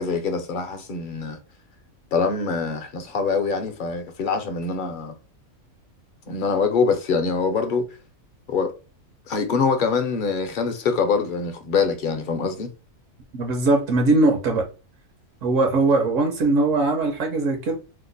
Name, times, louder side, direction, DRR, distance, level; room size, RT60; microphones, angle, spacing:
voice 1, 0.0-1.4 2.1-5.1 6.3-7.9 8.5-8.7 9.3-12.7, left 5 dB, 55° left, 0.6 m, -24 dB
voice 2, 13.3-14.7 15.4-17.8, right 2 dB, 75° right, 1.0 m, -20 dB
2.9 x 2.1 x 3.8 m
omnidirectional pair, 1.4 m